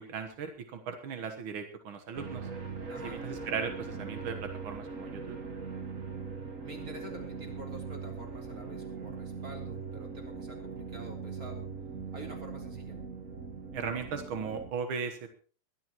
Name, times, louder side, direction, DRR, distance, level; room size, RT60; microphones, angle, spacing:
voice 1, 0.0-2.5 3.0-5.4 13.7-15.3, right 6 dB, 65° right, 6 dB, 1.2 m, -37 dB
sound 1, 2.1-14.7, right 5 dB, 45° right, 1.0 m, -41 dB
voice 2, 2.9-3.2 6.6-11.6 12.1-13.0, right 1 dB, 25° right, 1 dB, 3.7 m, -47 dB
22.0 x 12.5 x 3.0 m, 0.40 s
omnidirectional pair, 4.0 m